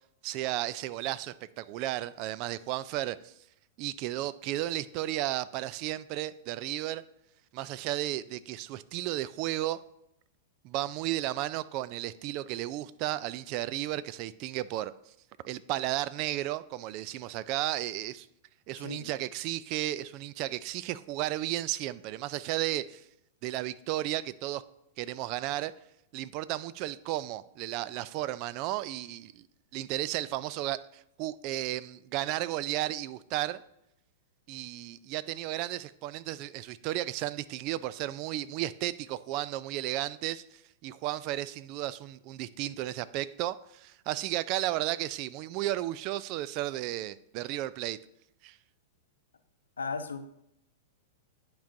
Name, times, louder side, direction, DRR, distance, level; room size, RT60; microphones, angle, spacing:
voice 1, 0.2-3.3 3.8-7.0 7.5-9.8 10.6-14.9 15.4-18.3 18.7-23.0 23.4-24.6 25.0-25.7 26.1-29.5 29.7-33.6 34.5-48.0 48.4-48.6, right 15 dB, 45° right, 17 dB, 0.3 m, -34 dB
voice 2, 18.8-19.1 49.8-50.2, left 4 dB, 80° left, 8 dB, 0.6 m, -36 dB
10.0 x 4.6 x 2.6 m, 0.79 s
figure-of-eight pair, 100°, 0 cm